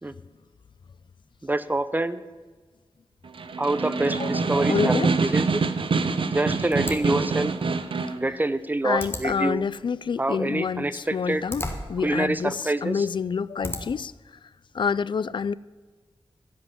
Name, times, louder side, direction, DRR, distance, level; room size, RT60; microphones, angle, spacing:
voice 1, 1.4-2.2 3.6-5.6 6.3-7.5 8.1-9.6 10.2-11.4 12.0-13.1, right 2 dB, 20° right, 0.6 m, -26 dB
Snare drum, 3.2-8.2, right 4 dB, 75° right, 0.8 m, -25 dB
voice 2, 4.7-5.1 8.8-14.4 14.7-15.5, left 6 dB, 60° left, 0.3 m, -28 dB
sound 1, 6.7-14.1, left 1 dB, 25° left, 1.5 m, -39 dB
15.5 x 5.6 x 9.7 m
wide cardioid pair, 105°, 9 cm